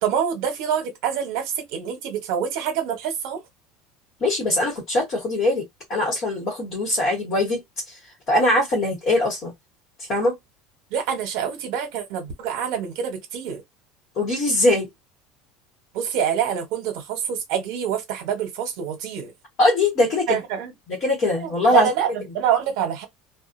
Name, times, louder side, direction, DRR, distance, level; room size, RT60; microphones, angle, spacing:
voice 1, 0.0-3.4 10.9-13.6 15.9-19.3 20.3-20.7 21.4-23.1, right 8 dB, 60° right, 1.0 m, -26 dB
voice 2, 4.2-5.6 5.9-7.6 8.3-9.5 10.1-10.4 14.2-14.9 19.6-20.4 20.9-21.9, left 2 dB, 30° left, 1.2 m, -21 dB
2.4 x 2.3 x 2.6 m
cardioid pair, 175°, 0 cm